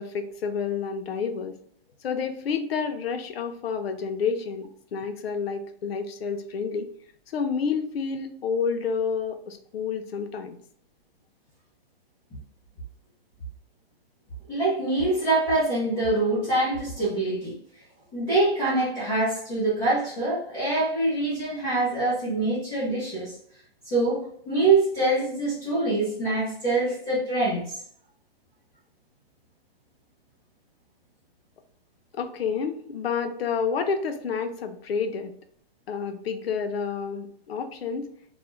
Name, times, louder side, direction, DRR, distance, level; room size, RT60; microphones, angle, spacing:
voice 1, 0.0-1.6 2.0-6.9 7.3-10.6 32.1-35.3 35.9-38.1, left 6 dB, 75° left, 7 dB, 0.6 m, -29 dB
voice 2, 14.5-17.6 18.1-23.3 23.9-27.8, right 2 dB, 10° left, -12 dB, 0.6 m, -24 dB
2.4 x 2.1 x 3.0 m, 0.62 s
hypercardioid pair, 160°, 30 cm